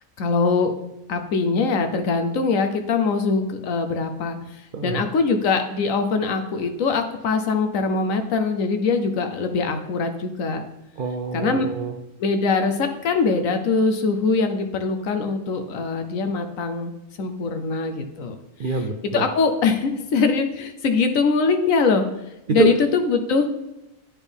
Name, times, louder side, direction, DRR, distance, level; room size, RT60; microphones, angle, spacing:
voice 1, 0.2-0.7 1.1-10.6 11.3-11.7 12.2-18.4 19.1-22.1 22.5-23.5, left 4 dB, 70° left, 7 dB, 1.1 m, -22 dB
voice 2, 4.7-5.0 11.0-12.0 18.6-19.3 22.5-22.7, right 6 dB, 80° right, 5 dB, 0.4 m, -25 dB
10.0 x 4.4 x 3.5 m, 0.91 s
omnidirectional pair, 1.5 m